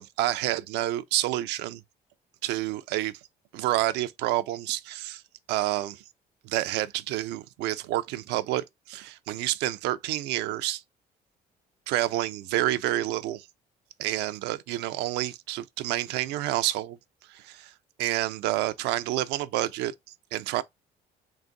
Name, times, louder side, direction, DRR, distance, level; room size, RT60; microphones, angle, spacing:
voice 1, 0.0-1.8 2.4-3.2 3.5-5.2 5.5-6.0 6.4-10.8 11.9-13.5 14.0-17.0 17.3-17.7 18.0-19.9 20.3-20.6, right 15 dB, 90° right, 0.4 m, -29 dB
3.9 x 2.6 x 3.7 m
cardioid pair, 110°, 17 cm